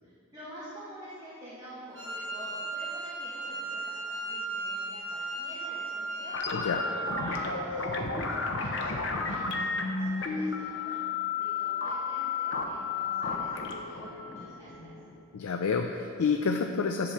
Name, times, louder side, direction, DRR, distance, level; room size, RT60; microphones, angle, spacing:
voice 1, 0.0-6.4 6.8-15.0, equal, 15° right, -12 dB, 1.4 m, -47 dB
Wind instrument woodwind instrument, 1.9-6.8, right 2 dB, 75° right, 2.1 m, -36 dB
sound 1, 6.3-15.3, left 4 dB, 55° left, 0.8 m, -32 dB
voice 2, 15.3-17.1, left 5 dB, 90° left, 5 dB, 0.5 m, -28 dB
10.5 x 4.2 x 7.1 m, 2.6 s
head